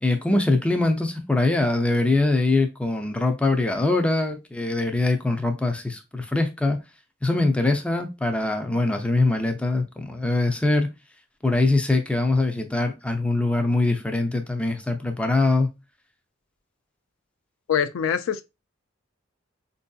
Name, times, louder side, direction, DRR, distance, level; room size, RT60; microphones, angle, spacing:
voice 1, 0.0-6.8 7.2-10.9 11.4-15.7, left 2 dB, 5° left, 0.4 m, -23 dB
voice 2, 17.7-18.4, left 8 dB, 70° left, 0.4 m, -24 dB
4.4 x 2.6 x 2.3 m
head